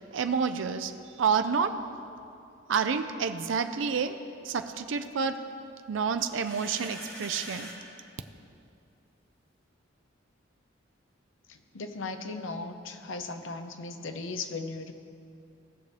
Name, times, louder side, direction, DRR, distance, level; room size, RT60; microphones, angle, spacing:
voice 1, 0.1-0.9 1.2-1.8 2.7-4.2 4.4-5.4 5.9-7.7, right 6 dB, 75° right, 8 dB, 0.5 m, -29 dB
sound 1, 6.2-7.8, equal, 10° left, 1.7 m, -43 dB
voice 2, 11.5-14.9, left 3 dB, 80° left, 7 dB, 0.8 m, -37 dB
18.0 x 6.7 x 3.3 m, 2.5 s
head